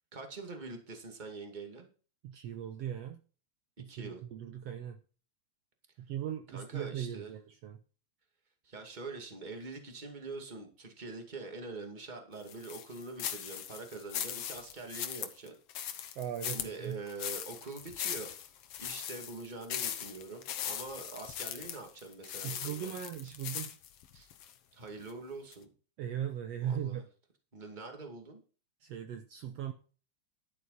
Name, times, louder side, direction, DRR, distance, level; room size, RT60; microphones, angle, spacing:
voice 1, 0.1-1.9 3.8-4.2 6.5-7.3 8.6-15.5 16.4-18.3 18.8-22.9 24.1-24.3 24.7-25.7 26.6-27.0 27.5-28.4, right 3 dB, 15° right, 3 dB, 2.1 m, -44 dB
voice 2, 2.2-3.2 3.8-5.0 6.0-7.8 16.2-17.0 22.4-23.8 26.0-27.0 28.8-29.7, right 10 dB, 70° right, 7 dB, 1.8 m, -38 dB
sound 1, 12.5-24.5 25.0-25.1 25.5-25.6, left 10 dB, 65° left, 1.8 m, -39 dB
12.0 x 8.5 x 4.2 m, 0.37 s
omnidirectional pair, 3.3 m